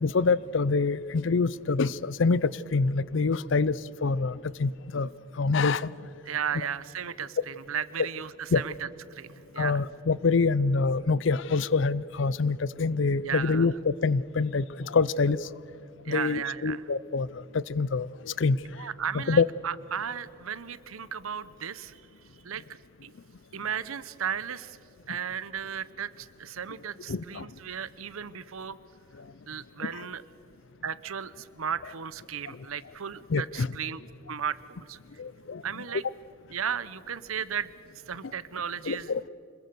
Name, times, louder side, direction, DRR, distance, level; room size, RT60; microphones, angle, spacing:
voice 1, 0.0-5.1 5.4-5.9 8.5-8.6 9.6-15.4 16.1-17.3 17.5-18.6 19.1-19.5 27.1-27.4 33.3-33.7 35.2-35.6 38.9-39.2, left 4 dB, 65° left, 20 dB, 0.5 m, -26 dB
voice 2, 6.3-9.8 13.2-13.7 16.0-16.8 18.6-22.0 22.4-23.1 23.5-24.8 25.1-28.8 29.5-30.2 30.8-34.0 34.3-35.0 35.6-36.0 36.5-37.7 38.1-39.1, right 7 dB, 90° right, 17 dB, 0.8 m, -35 dB
26.0 x 21.5 x 6.9 m, 2.7 s
head